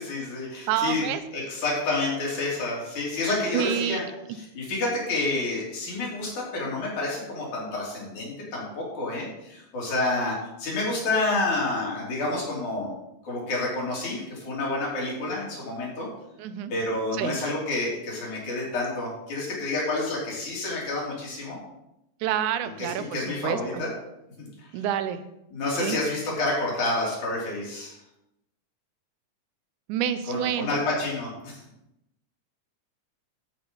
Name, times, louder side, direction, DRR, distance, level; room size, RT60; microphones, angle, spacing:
voice 1, 0.0-4.0 4.3-12.9 13.2-16.1 16.7-21.6 22.8-23.9 24.4-24.9 25.5-28.0 30.3-31.6, left 2 dB, 75° left, -4 dB, 4.8 m, -29 dB
voice 2, 0.7-1.2 3.5-4.0 16.4-16.7 17.2-17.4 22.2-23.8 24.7-25.2 25.8-26.0 29.9-30.8, right 10 dB, 85° right, 11 dB, 2.2 m, -28 dB
13.5 x 5.7 x 5.4 m, 0.87 s
omnidirectional pair, 3.4 m